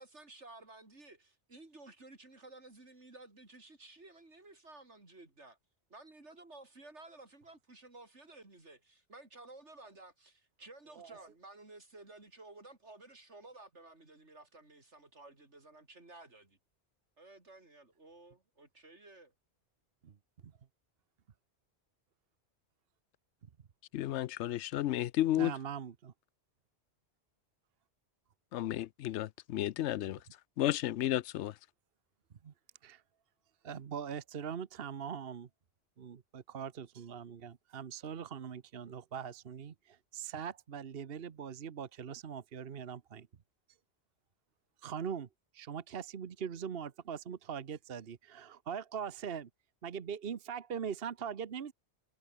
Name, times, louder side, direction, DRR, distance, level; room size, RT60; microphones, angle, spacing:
voice 1, 0.0-5.6 5.9-16.6 17.2-19.3, right 2 dB, 85° right, 4.6 m, -54 dB
voice 2, 23.9-25.5 28.5-30.2 30.6-31.5, left 13 dB, 85° left, 0.9 m, -32 dB
voice 3, 25.4-26.1 32.4-32.5 32.8-33.0 33.6-35.5 36.0-43.3 44.8-45.3 45.5-49.5 49.8-51.7, right 7 dB, 60° right, 1.2 m, -41 dB
omnidirectional pair, 1.2 m